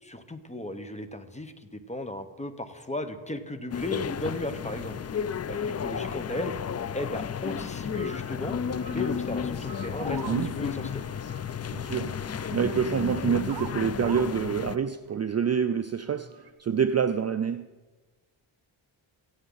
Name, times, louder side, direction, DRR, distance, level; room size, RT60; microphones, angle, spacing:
voice 1, 0.0-5.0 5.4-6.5 6.9-11.1, left 1 dB, 15° left, 1.1 m, -36 dB
sound 1, 3.7-14.8, left 7 dB, 35° left, 0.4 m, -33 dB
sound 2, 7.5-16.5, right 5 dB, 50° right, 1.6 m, -46 dB
voice 2, 11.7-17.7, right 7 dB, 35° right, 0.4 m, -27 dB
18.0 x 14.5 x 4.0 m
wide cardioid pair, 105°, 47 cm